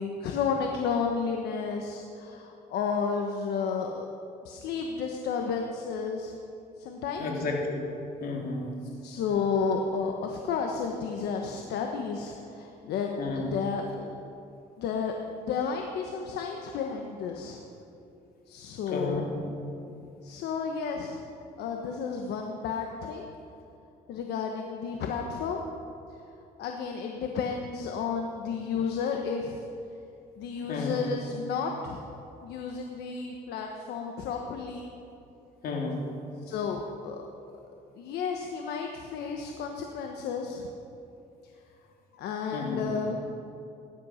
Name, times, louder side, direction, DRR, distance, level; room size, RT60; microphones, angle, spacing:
voice 1, 0.0-4.1 4.4-6.3 6.8-7.4 9.0-14.1 14.8-15.1 15.4-17.6 18.5-19.6 20.2-21.2 21.6-23.3 24.1-25.6 26.6-29.6 30.4-32.0 32.4-34.9 36.4-37.2 38.0-40.7 42.1-43.2, left 5 dB, 75° left, 2 dB, 1.2 m, -32 dB
voice 2, 7.2-7.8 8.2-8.7 13.2-13.5 18.9-19.3 30.7-31.0 35.6-36.1 42.5-42.9, left 3 dB, 60° left, 0 dB, 2.9 m, -32 dB
18.0 x 11.0 x 5.8 m, 2.7 s
cardioid pair, 110°, 17 cm